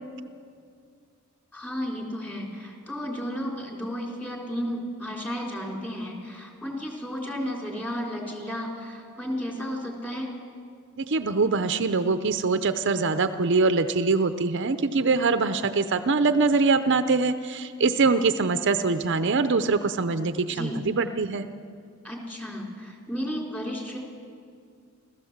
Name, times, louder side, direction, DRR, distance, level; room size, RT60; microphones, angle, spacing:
voice 1, 1.5-10.3 20.5-20.8 22.0-24.0, equal, 10° left, 0 dB, 3.5 m, -33 dB
voice 2, 11.0-21.5, right 4 dB, 55° right, 10 dB, 0.7 m, -23 dB
30.0 x 13.5 x 7.3 m, 2.2 s
head